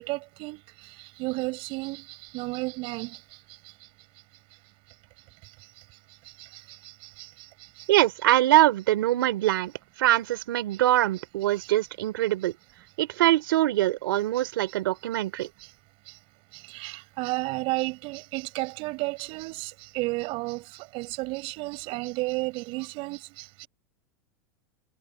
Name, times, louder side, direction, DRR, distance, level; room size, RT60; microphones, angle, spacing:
voice 1, 0.0-3.2 6.4-7.9 11.6-11.7 15.4-15.7 16.1-16.2 16.5-23.7, right 24 dB, 50° right, 6.8 m, -33 dB
voice 2, 7.9-9.7 10.0-12.5 13.0-15.5, right 15 dB, 80° right, 3.2 m, -23 dB
supercardioid pair, 125°, 12 cm